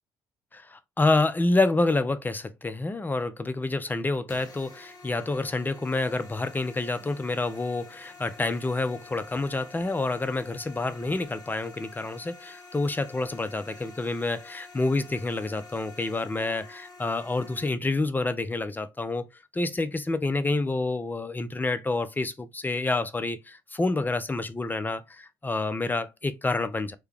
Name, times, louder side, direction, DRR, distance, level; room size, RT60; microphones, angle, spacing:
voice 1, 0.5-19.3 19.5-27.0, left 2 dB, 15° left, 0.5 m, -28 dB
sound 1, 4.3-17.7, left 3 dB, 35° left, 1.3 m, -49 dB
3.3 x 2.2 x 3.5 m
supercardioid pair, 65°, 11 cm